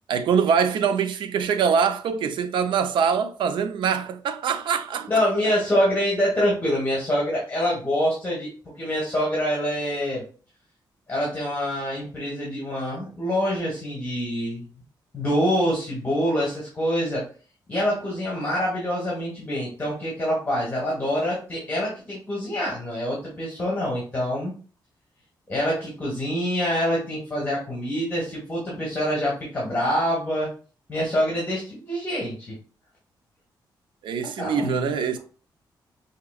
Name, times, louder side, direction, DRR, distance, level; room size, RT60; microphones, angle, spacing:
voice 1, 0.1-5.2 34.0-35.2, right 6 dB, 90° right, 0.5 m, -23 dB
voice 2, 5.1-8.5 8.8-10.2 11.1-14.7 15.1-17.3 17.7-24.5 25.5-30.5 30.9-32.6 34.4-35.2, equal, 20° left, 1.3 m, -25 dB
4.9 x 2.9 x 2.4 m
wide cardioid pair, 150°, 8 cm